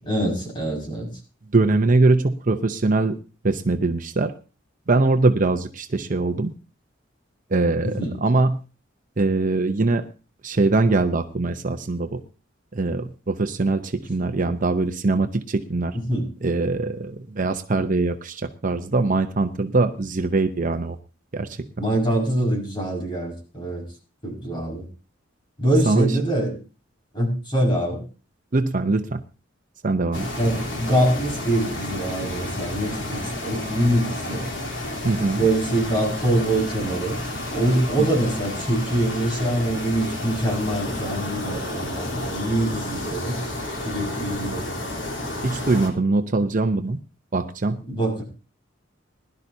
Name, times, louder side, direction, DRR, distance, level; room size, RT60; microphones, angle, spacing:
voice 1, 0.1-1.1 7.8-8.1 15.9-16.3 21.8-23.9 24.2-24.9 25.6-26.6 27.1-28.0 30.4-34.5 35.4-37.2 37.5-43.4 43.8-44.7 47.9-48.2, right 1 dB, 25° left, 1 dB, 5.5 m, -24 dB
voice 2, 1.5-3.2 3.4-4.3 4.9-6.5 7.5-8.6 9.2-10.1 10.4-12.2 12.7-16.0 16.4-21.0 21.3-21.6 25.9-26.1 28.5-29.2 29.8-30.3 35.0-35.5 38.0-38.1 45.4-47.0 47.3-47.8, right 3 dB, 45° right, 8 dB, 0.7 m, -22 dB
sound 1, 30.1-45.9, left 1 dB, 70° left, 3.3 m, -31 dB
20.5 x 12.0 x 2.7 m, 0.32 s
head